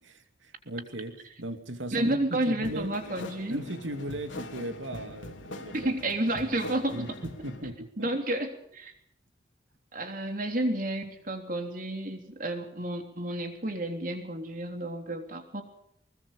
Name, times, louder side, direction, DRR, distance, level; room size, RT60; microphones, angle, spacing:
voice 1, 0.0-2.9 3.5-5.9 6.9-8.1, right 1 dB, 85° right, 7 dB, 2.7 m, -38 dB
voice 2, 1.9-3.6 5.7-7.0 8.0-8.9 9.9-15.6, right 1 dB, 45° right, 5 dB, 3.5 m, -31 dB
sound 1, 2.6-7.7, left 2 dB, 85° left, 3.3 m, -43 dB
23.0 x 21.5 x 5.4 m, 0.72 s
head